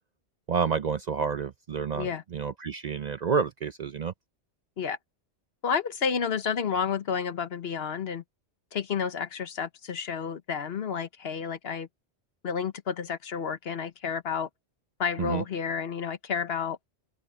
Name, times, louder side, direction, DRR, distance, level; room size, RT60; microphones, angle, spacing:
voice 1, 0.5-4.1 15.2-15.4, right 6 dB, 50° right, 0.5 m, -29 dB
voice 2, 5.6-8.2 8.7-11.9 12.4-14.5 15.0-16.8, left 6 dB, 65° left, 1.2 m, -30 dB
open air
omnidirectional pair, 1.1 m